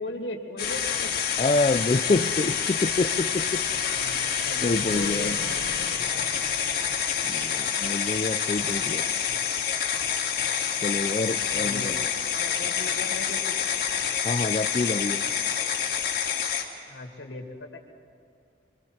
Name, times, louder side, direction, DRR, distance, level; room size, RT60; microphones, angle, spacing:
voice 1, 0.0-1.2 3.8-6.5 7.1-7.5 11.5-13.7 16.9-17.8, left 2 dB, 85° left, 2 dB, 2.4 m, -39 dB
sound 1, 0.6-16.6, left 7 dB, 60° left, 2.5 m, -27 dB
voice 2, 1.4-3.6 4.6-5.4 7.2-9.0 10.8-12.0 14.2-15.2, left 3 dB, 35° left, 7 dB, 0.4 m, -27 dB
sound 2, 2.9-7.7, right 1 dB, 55° right, 2.0 m, -45 dB
25.5 x 24.0 x 4.4 m, 2.3 s
head